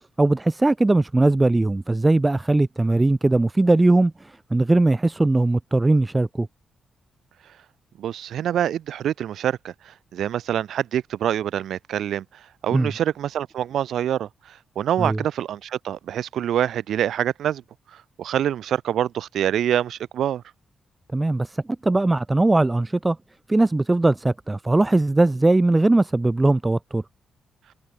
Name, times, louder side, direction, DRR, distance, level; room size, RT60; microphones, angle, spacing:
voice 1, 0.2-6.5 12.7-12.9 15.0-15.2 21.1-23.2 23.5-27.0, right 2 dB, 10° right, 1.7 m, -20 dB
voice 2, 8.0-12.2 12.6-17.6 18.2-20.4, right 10 dB, 65° right, 1.0 m, -25 dB
wide cardioid pair, 170°, 0 cm